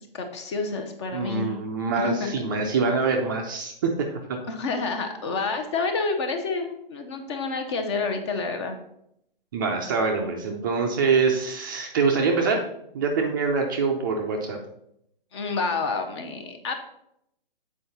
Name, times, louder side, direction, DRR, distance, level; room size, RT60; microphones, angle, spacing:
voice 1, 0.1-1.6 1.9-2.5 4.5-8.8 15.3-16.7, left 4 dB, 30° left, 6 dB, 0.8 m, -29 dB
voice 2, 1.1-4.4 9.5-12.6 12.9-14.6, right 4 dB, 20° right, 2 dB, 0.5 m, -25 dB
7.6 x 4.7 x 4.1 m, 0.76 s
hypercardioid pair, 150°, 29 cm